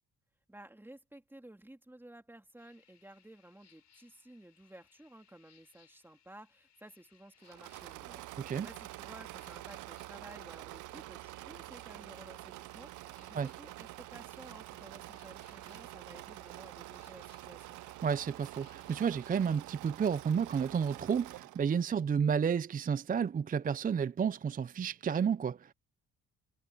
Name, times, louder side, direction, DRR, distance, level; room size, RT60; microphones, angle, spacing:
voice 1, 0.5-17.8, right 1 dB, 5° right, 3.2 m, -54 dB
sound 1, 2.6-19.6, left 9 dB, 60° left, 5.7 m, -68 dB
Engine / Mechanisms, 7.4-21.7, right 18 dB, 80° right, 0.5 m, -47 dB
voice 2, 18.0-25.7, right 7 dB, 30° right, 0.5 m, -31 dB
cardioid pair, 90°, 30 cm